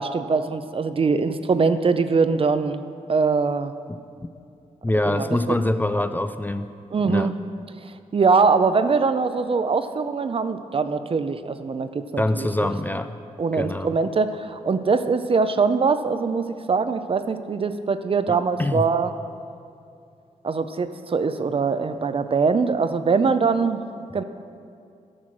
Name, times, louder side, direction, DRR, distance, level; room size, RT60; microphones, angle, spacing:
voice 1, 0.0-2.8 3.1-3.7 5.1-5.6 6.9-7.3 7.8-12.7 13.4-19.1 20.4-23.8 24.1-24.2, right 4 dB, 45° right, 10 dB, 0.5 m, -22 dB
voice 2, 3.9-4.3 4.8-6.7 7.1-7.3 12.2-13.2 13.5-13.9 18.3-18.9 24.2-24.3, left 1 dB, 15° left, 10 dB, 0.4 m, -25 dB
12.0 x 6.2 x 6.2 m, 2.5 s
wide cardioid pair, 90°, 14 cm